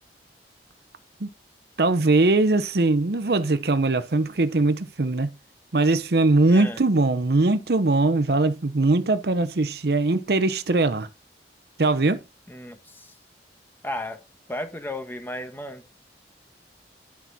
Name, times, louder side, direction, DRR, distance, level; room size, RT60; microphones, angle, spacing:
voice 1, 1.8-5.3 5.7-11.1 11.8-12.2, right 2 dB, 60° right, 0.7 m, -21 dB
voice 2, 6.5-6.8 12.5-13.1 13.8-14.2 14.5-15.9, left 1 dB, 10° left, 1.3 m, -34 dB
11.5 x 5.9 x 4.1 m
head